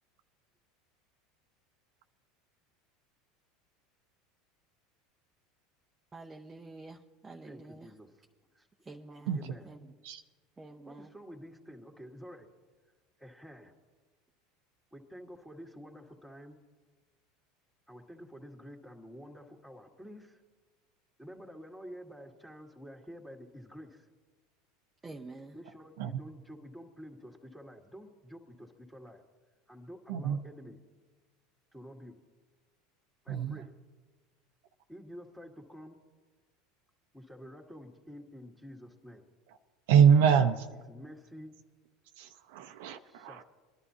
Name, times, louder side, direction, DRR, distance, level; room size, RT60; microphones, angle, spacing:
voice 1, 6.1-7.0 7.2-7.9 8.9-9.8 10.6-11.1 25.0-25.6 33.3-33.5, right 2 dB, 20° right, 1 dB, 0.7 m, -48 dB
voice 2, 7.4-8.1 8.6-8.7 9.4-9.7 10.9-12.5 13.2-13.7 14.9-16.6 17.9-20.4 21.2-24.1 25.5-29.2 29.7-30.8 31.7-32.2 33.2-33.7 34.9-36.0 37.1-39.3 40.4-40.5 40.9-41.5 43.1-43.4, equal, 5° left, 1 dB, 2.0 m, -49 dB
voice 3, 33.3-33.6 39.9-40.7 42.2-43.4, right 7 dB, 75° right, 7 dB, 0.7 m, -25 dB
22.5 x 11.0 x 2.8 m, 1.4 s
hypercardioid pair, 95°, 0 cm